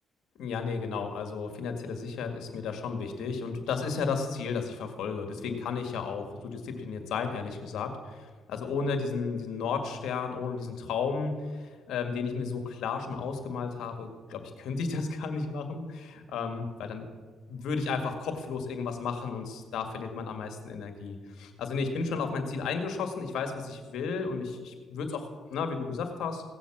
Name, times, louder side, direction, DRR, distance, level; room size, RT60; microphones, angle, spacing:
voice 1, 0.4-17.0 17.5-26.4, left 5 dB, 80° left, 6 dB, 1.9 m, -33 dB
17.0 x 7.3 x 7.4 m, 1.5 s
cardioid pair, 90°, 0 cm